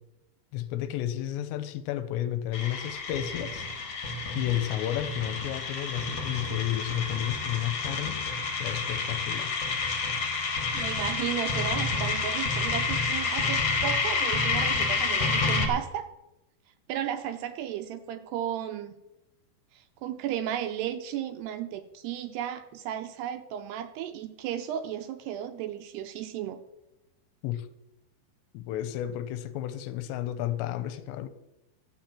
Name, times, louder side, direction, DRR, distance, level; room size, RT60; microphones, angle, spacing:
voice 1, 0.5-3.7 4.4-8.2 8.6-9.6 27.4-27.7 28.5-31.3, left 12 dB, 90° left, 2.9 m, -32 dB
sound 1, 2.5-15.7, left 4 dB, 45° left, 2.2 m, -29 dB
voice 2, 10.7-16.1 16.9-18.9 19.7-26.6, right 10 dB, 80° right, 2.5 m, -34 dB
13.0 x 7.4 x 7.4 m
omnidirectional pair, 5.2 m